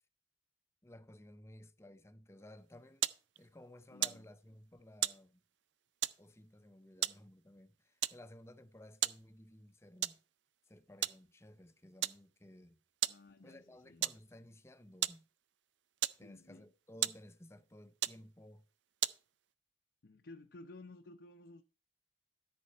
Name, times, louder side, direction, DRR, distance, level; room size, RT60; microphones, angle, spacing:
voice 1, 0.8-3.1 3.4-5.4 6.2-10.2 10.7-12.8 13.4-15.3 16.2-18.7, left 1 dB, 15° left, 0.6 m, -56 dB
sound 1, 2.6-19.5, right 14 dB, 85° right, 0.4 m, -41 dB
voice 2, 3.9-4.3 13.0-14.0 16.2-16.7 20.0-21.6, left 2 dB, 75° left, 0.7 m, -55 dB
13.0 x 4.4 x 5.5 m
head